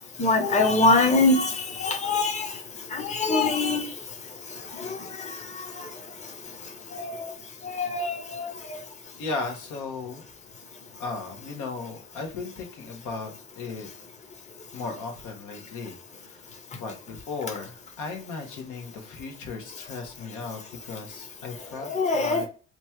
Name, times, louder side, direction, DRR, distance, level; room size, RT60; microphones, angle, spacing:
voice 1, 0.2-2.6 2.9-3.9 4.7-5.8 6.9-7.3 7.6-8.8 21.8-22.5, left 3 dB, 25° left, 5 dB, 0.7 m, -24 dB
voice 2, 9.2-10.2 11.0-13.9 14.7-16.0 16.2-16.5 16.8-20.6 20.8-22.5, left 4 dB, 85° left, 2 dB, 1.0 m, -36 dB
3.0 x 2.4 x 4.3 m, 0.36 s
cardioid pair, 90°, 30 cm